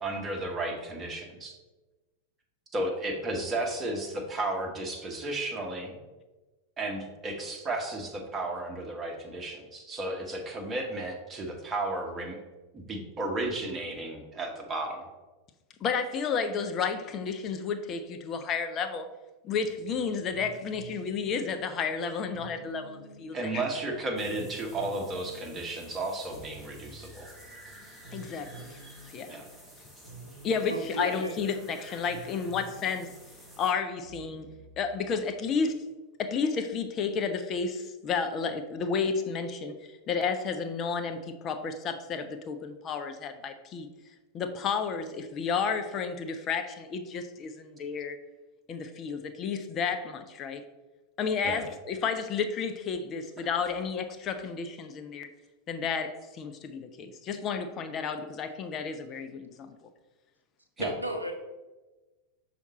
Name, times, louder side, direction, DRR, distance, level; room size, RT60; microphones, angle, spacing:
voice 1, 0.0-1.6 2.7-6.0 6.8-12.4 12.7-15.1 23.3-27.3 29.3-29.5 51.4-51.6 53.4-53.5 60.8-60.9, right 2 dB, 20° right, 0 dB, 1.3 m, -33 dB
voice 2, 15.8-19.1 19.4-23.6 28.1-28.5 29.1-29.4 30.4-33.1 33.6-34.5 34.8-35.8 36.2-39.8 40.1-43.9 44.3-48.2 48.7-50.6 51.2-55.3 55.7-59.7, left 5 dB, 30° left, 7 dB, 0.5 m, -31 dB
sound 1, 19.5-35.7, right 2 dB, 80° left, 1.8 m, -51 dB
sound 2, 24.2-33.7, equal, 5° left, 1.7 m, -52 dB
voice 3, 30.7-31.4 60.8-61.3, right 1 dB, 85° right, 4 dB, 0.8 m, -33 dB
5.7 x 4.2 x 4.2 m, 1.2 s
figure-of-eight pair, 90°, 0 cm